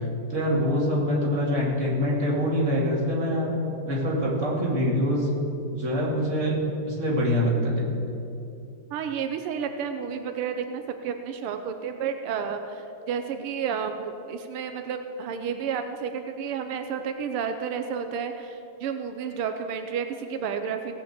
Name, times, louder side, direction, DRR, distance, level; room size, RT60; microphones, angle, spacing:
voice 1, 0.3-3.6 3.8-5.3 5.7-6.6 6.9-8.0, equal, 35° right, -4 dB, 2.7 m, -24 dB
voice 2, 8.9-21.0, right 7 dB, 85° right, 7 dB, 1.7 m, -31 dB
17.5 x 5.8 x 8.0 m, 2.8 s
omnidirectional pair, 2.4 m